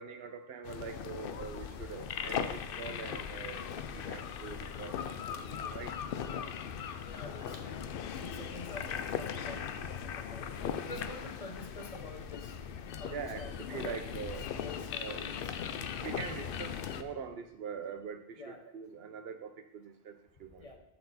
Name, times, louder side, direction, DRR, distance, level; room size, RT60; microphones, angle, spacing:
voice 1, 0.0-6.0 7.3-7.4 13.1-14.5 15.0-15.2 16.0-20.7, right 6 dB, 70° right, 9 dB, 0.9 m, -44 dB
sound 1, 0.6-17.0, left 7 dB, 65° left, 0.7 m, -39 dB
voice 2, 7.0-7.8 8.2-10.5 10.9-12.6 13.0-14.0 14.6-15.4 18.4-18.6 20.6-20.8, left 2 dB, 35° left, 3 dB, 0.9 m, -47 dB
12.0 x 4.3 x 4.2 m, 0.93 s
omnidirectional pair, 1.1 m